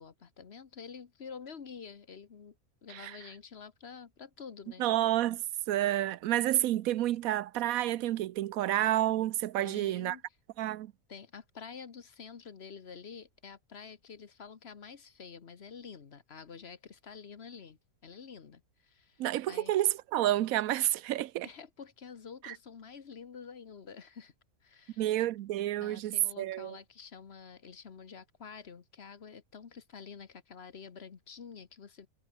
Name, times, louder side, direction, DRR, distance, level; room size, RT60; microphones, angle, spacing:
voice 1, 0.0-2.6 2.8-4.9 9.6-10.2 11.1-19.8 21.4-24.3 24.6-25.1 25.8-32.1, left 6 dB, 50° left, 1.4 m, -48 dB
voice 2, 4.8-10.2 10.6-10.9 19.2-21.5 22.4-22.5 25.0-26.8, right 13 dB, 90° right, 1.1 m, -30 dB
omnidirectional pair, 1.4 m